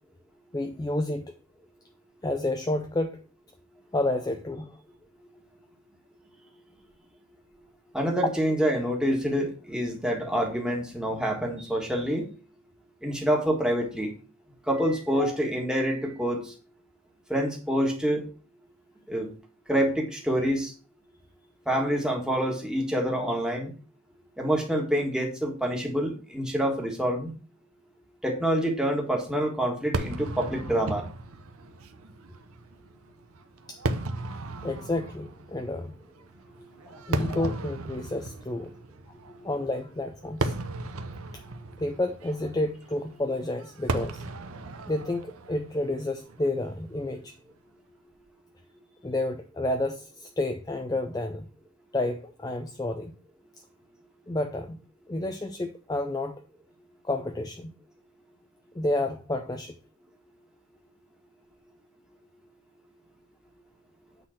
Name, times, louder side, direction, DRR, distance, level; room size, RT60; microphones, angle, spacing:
voice 1, 0.5-1.3 2.2-3.2 3.9-4.8 15.2-15.4 33.7-33.8 34.6-36.0 36.9-38.7 39.4-40.5 41.3-41.4 41.8-44.2 44.9-47.4 49.0-51.5 51.9-53.1 54.3-54.8 55.1-56.4 57.0-57.7 58.7-59.8, left 2 dB, 15° left, 5 dB, 0.4 m, -30 dB
voice 2, 7.9-12.3 13.0-14.1 14.7-16.5 17.3-18.2 19.1-19.3 19.7-20.7 21.7-23.7 24.4-27.3 28.2-31.0, equal, 5° right, 0 dB, 1.6 m, -27 dB
Fireworks, 29.9-47.3, right 2 dB, 75° right, 0.8 m, -36 dB
8.8 x 4.0 x 5.8 m, 0.38 s
head